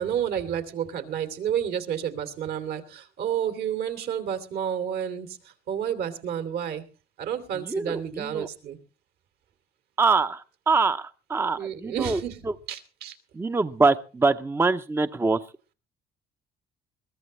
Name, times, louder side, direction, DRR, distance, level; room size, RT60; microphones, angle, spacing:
voice 1, 0.0-6.8 7.2-8.8 11.6-13.2, right 9 dB, 70° right, 9 dB, 2.8 m, -30 dB
voice 2, 7.7-8.5 10.0-12.2 13.4-15.4, right 4 dB, 15° right, 11 dB, 0.6 m, -24 dB
22.0 x 14.5 x 3.1 m, 0.34 s
cardioid pair, 110°, 17 cm